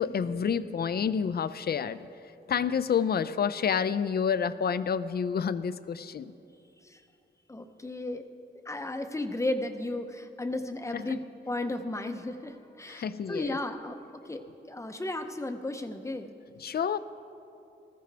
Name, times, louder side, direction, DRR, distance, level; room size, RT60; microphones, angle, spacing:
voice 1, 0.0-2.0 2.5-6.3 10.9-11.2 12.9-13.6 16.6-17.0, left 7 dB, 55° left, 14 dB, 0.4 m, -29 dB
voice 2, 7.5-8.3 8.7-14.0 14.2-14.4 14.7-16.3, left 2 dB, 15° left, 7 dB, 0.6 m, -34 dB
20.0 x 15.0 x 3.4 m, 2.7 s
wide cardioid pair, 180°, 20 cm